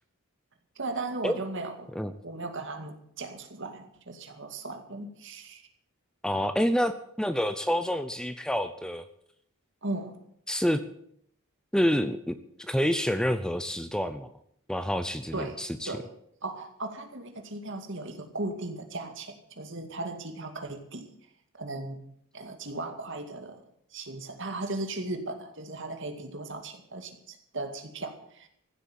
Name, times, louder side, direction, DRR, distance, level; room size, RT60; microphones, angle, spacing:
voice 1, 0.8-1.9 2.2-5.6 9.8-10.2 15.3-15.6 15.9-16.1 16.4-21.1 21.6-22.0 22.3-23.6 23.9-28.5, right 2 dB, 55° right, 6 dB, 2.2 m, -37 dB
voice 2, 6.2-9.1 10.5-10.8 11.7-14.3 14.7-15.9, equal, 5° left, 10 dB, 0.6 m, -28 dB
15.0 x 8.3 x 9.1 m, 0.69 s
head